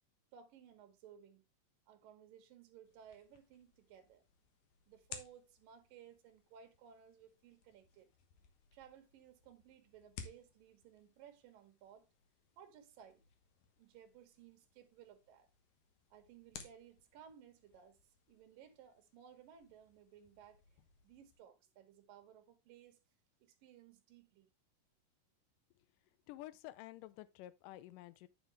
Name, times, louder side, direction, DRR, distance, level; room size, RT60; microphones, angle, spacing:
voice 1, 0.3-1.4 1.9-4.3 4.9-8.1 8.7-12.1 12.6-13.2 13.8-15.5 16.1-20.6 21.0-23.0 23.4-24.5, right 9 dB, 70° right, 2.9 m, -59 dB
sound 1, 2.8-21.4, left 7 dB, 60° left, 2.2 m, -59 dB
voice 2, 26.3-28.3, left 15 dB, 80° left, 2.0 m, -51 dB
9.3 x 6.4 x 3.3 m
omnidirectional pair, 4.3 m